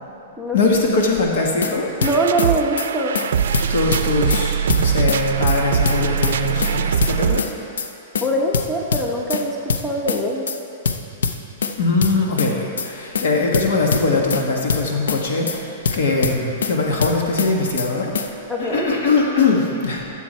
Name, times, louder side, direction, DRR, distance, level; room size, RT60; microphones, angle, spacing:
voice 1, 0.5-1.9 3.7-7.5 11.8-18.1 18.6-20.0, left 3 dB, 70° left, -1 dB, 1.7 m, -21 dB
sound 1, 1.3-1.7 2.0-2.5 2.8-2.9 3.1-3.3 3.5-4.4 4.7-5.2 5.5-5.6 5.8-6.7 7.0-7.5 7.8-7.9 8.1-8.3 8.5-9.4 9.7-10.2 10.5-10.6 10.8-11.7 12.0-12.5 12.8-12.9 13.1-13.3 13.5-14.4 14.7-15.2 15.5-15.6 15.8-16.7 17.0-17.5 17.8-17.9 18.1-18.3, left 5 dB, 85° left, 0.7 m, -23 dB
voice 2, 2.0-3.2 8.2-10.5 18.5-18.9, right 1 dB, 5° left, -2 dB, 1.0 m, -22 dB
sound 2, 2.0-7.4, right 8 dB, 80° right, 0.4 m, -22 dB
14.0 x 7.0 x 4.4 m, 2.8 s
hypercardioid pair, 145°, 0 cm